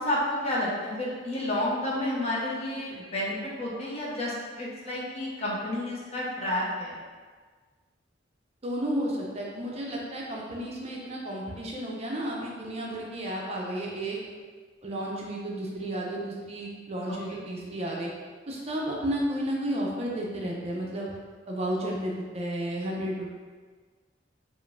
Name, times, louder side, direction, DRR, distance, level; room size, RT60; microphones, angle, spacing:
voice 1, 0.0-7.0 17.1-17.2, left 1 dB, 35° left, -5 dB, 0.8 m, -30 dB
voice 2, 8.6-14.2 14.8-18.1 18.5-21.1 21.5-23.3, right 1 dB, 35° right, -2 dB, 0.5 m, -32 dB
4.9 x 2.5 x 2.5 m, 1.5 s
head